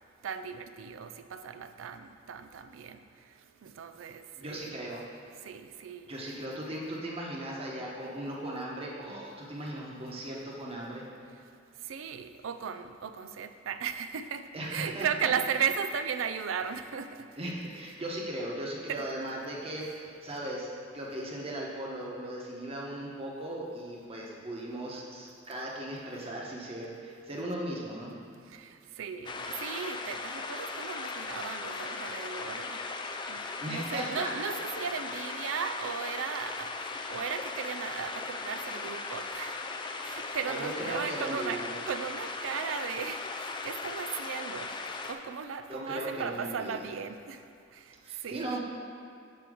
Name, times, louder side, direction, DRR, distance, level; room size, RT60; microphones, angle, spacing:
voice 1, 0.2-3.0 3.6-4.7 5.4-6.4 11.9-14.4 14.7-17.2 18.9-19.1 19.8-19.9 28.5-28.7 29.0-32.8 33.3-33.4 33.6-39.6 40.0-44.7 45.0-47.4 48.2-48.6, right 7 dB, 85° right, 9 dB, 0.4 m, -36 dB
voice 2, 4.4-5.0 6.1-11.0 14.5-15.3 17.4-28.1 33.6-34.3 40.5-41.7 45.7-46.9 48.0-48.6, right 1 dB, 30° right, -3 dB, 1.1 m, -37 dB
sound 1, 29.3-45.1, left 3 dB, 25° left, 0.3 m, -38 dB
8.7 x 3.0 x 6.3 m, 2.5 s
head